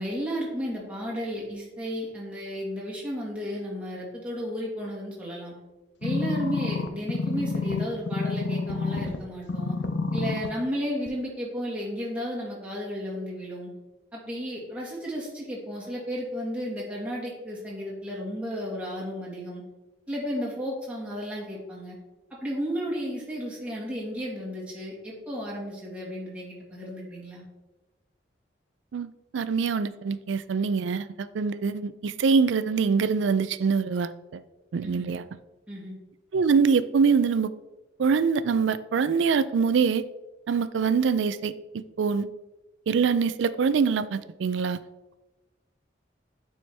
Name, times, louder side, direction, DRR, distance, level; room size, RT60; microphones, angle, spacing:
voice 1, 0.0-5.5 6.0-9.8 10.1-13.7 14.1-19.6 20.1-21.9 22.4-27.4 34.8-35.1 35.7-35.9, equal, 5° right, -6 dB, 1.6 m, -33 dB
sound 1, 6.0-9.2 9.5-10.5 11.1-11.2, left 3 dB, 70° left, 0.6 m, -28 dB
voice 2, 28.9-34.4 34.7-35.3 36.3-37.5 38.0-40.0 40.5-41.5 42.0-42.3 42.9-44.8, right 5 dB, 75° right, 14 dB, 0.4 m, -24 dB
9.3 x 4.4 x 3.3 m, 1.1 s
head